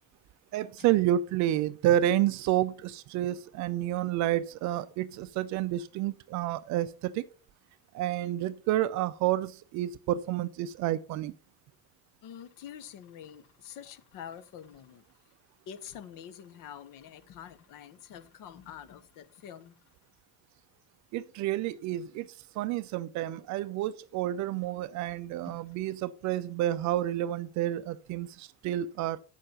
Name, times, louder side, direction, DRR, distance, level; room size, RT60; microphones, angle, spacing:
voice 1, 0.5-7.3 7.9-11.3 21.1-29.2, right 13 dB, 40° right, 0.6 m, -29 dB
voice 2, 12.2-15.0 15.7-19.8 24.5-24.7 25.5-25.6, left 9 dB, 45° left, 1.1 m, -46 dB
8.2 x 6.5 x 5.5 m
figure-of-eight pair, 65°, 46 cm